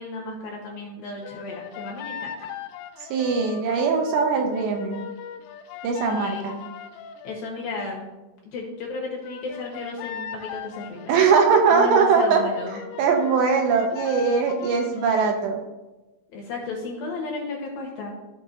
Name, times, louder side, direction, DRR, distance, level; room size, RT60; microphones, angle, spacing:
voice 1, 0.0-2.3 5.9-6.6 7.2-8.1 8.4-11.2 11.7-12.8 16.3-18.1, left 3 dB, 65° left, -1 dB, 2.6 m, -34 dB
sound 1, 1.2-7.4 9.2-15.4, left 9 dB, 85° left, 2.7 m, -38 dB
voice 2, 3.1-5.1 5.8-6.6 11.1-12.4 13.0-15.6, right 5 dB, 80° right, 3 dB, 2.9 m, -21 dB
15.0 x 5.3 x 2.7 m, 1.1 s
omnidirectional pair, 5.3 m